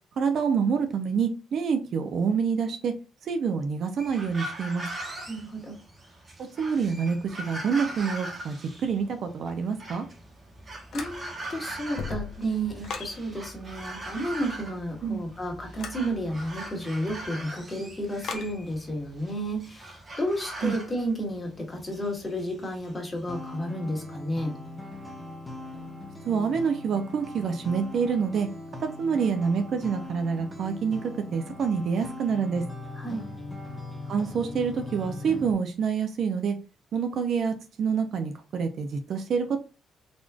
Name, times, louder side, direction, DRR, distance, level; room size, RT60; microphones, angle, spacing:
voice 1, 0.2-2.9 3.2-4.9 6.6-8.6 8.8-10.0 15.0-15.2 20.6-20.7 26.3-28.5 28.8-32.6 34.1-36.6 36.9-39.6, right 6 dB, 65° right, 7 dB, 0.7 m, -27 dB
sound 1, 4.0-23.6, right 1 dB, 35° right, 1.3 m, -41 dB
voice 2, 5.3-5.7 10.9-24.6 33.0-33.3, right 1 dB, 25° left, 0 dB, 1.7 m, -32 dB
sound 2, 10.9-11.5 11.8-13.2 15.7-16.0 18.2-18.5, left 6 dB, 70° left, 0.8 m, -36 dB
sound 3, 23.3-35.5, left 2 dB, 10° left, 1.0 m, -40 dB
4.2 x 3.0 x 2.4 m, 0.30 s
cardioid pair, 90°, 0 cm